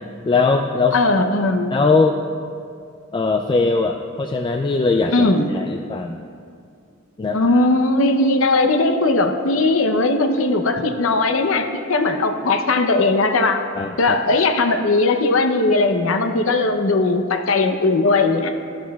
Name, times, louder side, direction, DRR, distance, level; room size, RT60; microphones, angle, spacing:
voice 1, 0.3-1.0 1.7-2.2 3.1-6.2 7.2-7.7 10.8-10.9 13.7-14.2, left 3 dB, 25° left, 4 dB, 0.3 m, -20 dB
voice 2, 0.9-1.7 5.1-5.5 7.3-13.6 14.0-18.5, left 2 dB, 75° left, 6 dB, 0.7 m, -18 dB
14.0 x 11.0 x 2.3 m, 2.3 s
head